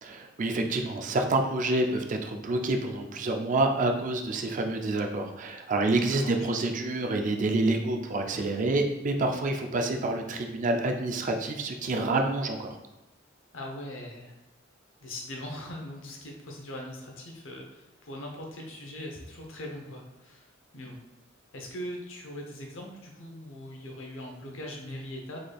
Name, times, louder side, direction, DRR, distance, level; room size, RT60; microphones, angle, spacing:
voice 1, 0.0-12.8, right 2 dB, 40° right, 4 dB, 0.4 m, -28 dB
voice 2, 6.1-6.5 13.5-14.3 15.0-20.5 20.7-21.0 21.5-25.4, left 1 dB, 85° left, 1 dB, 0.8 m, -40 dB
3.8 x 3.3 x 2.3 m, 1.0 s
head